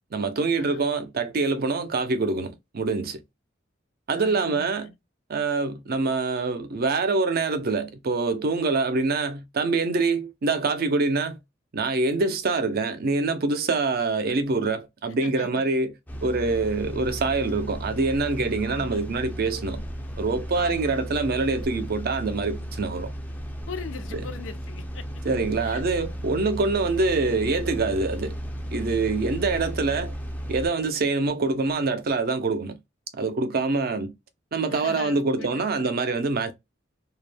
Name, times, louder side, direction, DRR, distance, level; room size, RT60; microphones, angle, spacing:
voice 1, 0.1-3.2 4.1-4.9 5.3-11.4 11.7-15.9 16.2-19.8 20.2-23.1 24.1-24.2 25.2-28.4 28.7-30.1 30.5-32.8 33.1-34.1 34.5-36.5, right 3 dB, 50° right, 0.5 m, -25 dB
voice 2, 4.1-4.9 15.2-15.6 18.6-19.2 20.5-21.0 23.7-25.1 25.3-26.3 34.7-36.2, left 5 dB, 75° left, 0.5 m, -41 dB
sound 1, 16.1-30.7, equal, 10° left, 0.4 m, -35 dB
2.3 x 2.1 x 3.3 m
head